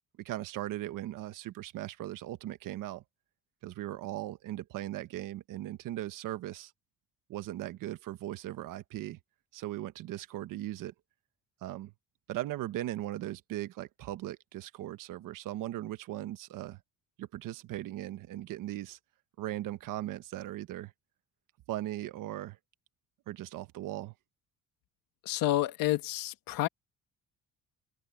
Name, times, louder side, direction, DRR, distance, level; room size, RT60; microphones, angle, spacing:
voice 1, 0.2-3.0 3.6-6.7 7.3-9.2 9.5-10.9 11.6-11.9 12.3-16.8 17.2-19.0 19.4-20.9 21.7-22.6 23.3-24.1, right 14 dB, 75° right, 1.3 m, -38 dB
voice 2, 25.2-26.7, left 15 dB, 90° left, 1.6 m, -29 dB
open air
cardioid pair, 135°, 33 cm